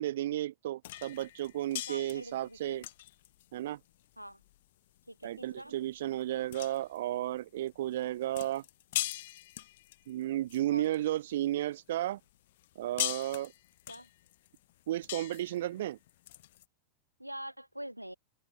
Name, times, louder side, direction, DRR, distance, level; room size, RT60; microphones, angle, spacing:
voice 1, 0.0-2.8 3.5-3.8 5.2-8.6 10.1-12.2 12.8-13.5 14.9-16.0, right 13 dB, 55° right, 0.9 m, -33 dB
sound 1, 0.8-11.4 11.9-16.6, left 15 dB, 55° left, 2.9 m, -41 dB
voice 2, 1.9-2.9 4.2-4.4 5.1-5.8 10.7-10.9 13.9-14.1 17.2-18.1, right 1 dB, 90° right, 4.7 m, -45 dB
figure-of-eight pair, 90°, 0 cm